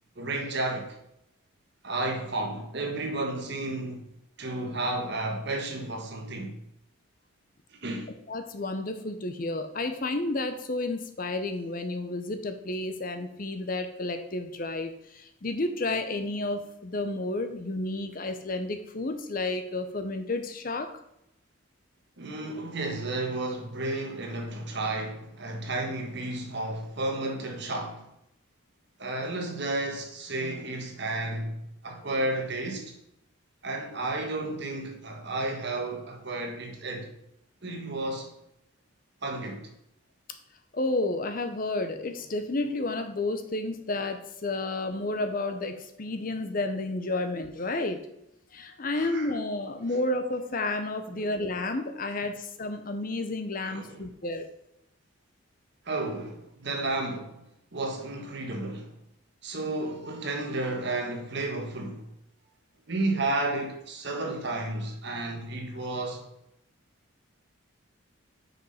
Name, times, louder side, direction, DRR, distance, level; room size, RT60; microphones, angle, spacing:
voice 1, 0.1-1.0 1.8-4.1 4.4-6.6 7.7-8.1 22.2-28.1 29.0-32.9 33.6-37.1 37.6-38.3 39.2-39.7 48.9-49.3 51.1-51.2 52.2-52.3 53.6-54.0 55.8-57.4 57.7-59.0 59.4-62.1 62.9-66.2, right 2 dB, 55° right, 1.4 m, -32 dB
voice 2, 8.3-20.9 40.7-48.1 48.5-54.5, left 2 dB, 40° left, 0.7 m, -31 dB
6.3 x 5.2 x 5.5 m
head